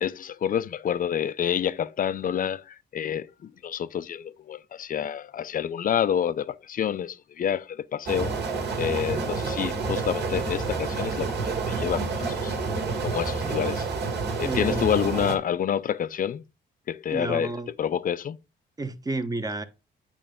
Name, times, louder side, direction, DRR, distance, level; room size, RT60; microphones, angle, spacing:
voice 1, 0.0-8.3 8.8-12.5 13.0-13.9 14.4-16.4 16.9-18.4, left 9 dB, 45° left, 0.5 m, -28 dB
sound 1, 8.1-15.4, right 4 dB, 60° right, 1.9 m, -29 dB
voice 2, 14.4-15.0 17.1-17.7 18.8-19.6, right 2 dB, 20° right, 0.9 m, -31 dB
8.7 x 3.3 x 5.1 m
cardioid pair, 90°, 20 cm